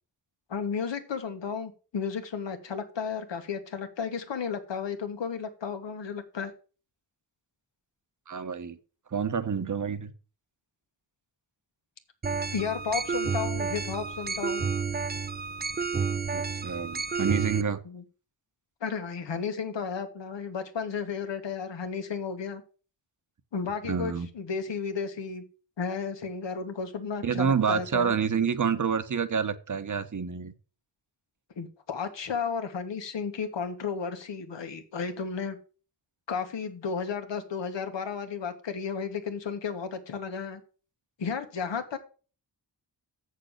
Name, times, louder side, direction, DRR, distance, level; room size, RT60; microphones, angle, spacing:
voice 1, 0.5-6.5 12.5-14.7 17.8-18.0 18.8-22.6 23.5-25.4 25.8-28.2 31.6-35.6 36.3-40.6 41.2-42.0, left 6 dB, 75° left, 7 dB, 1.6 m, -33 dB
voice 2, 8.3-8.8 9.1-10.1 16.3-17.8 23.8-24.3 27.2-30.5, right 6 dB, 45° right, 11 dB, 1.1 m, -28 dB
sound 1, 12.2-17.6, right 5 dB, 25° right, 0.5 m, -30 dB
7.5 x 6.6 x 6.6 m, 0.37 s
cardioid pair, 75°, 44 cm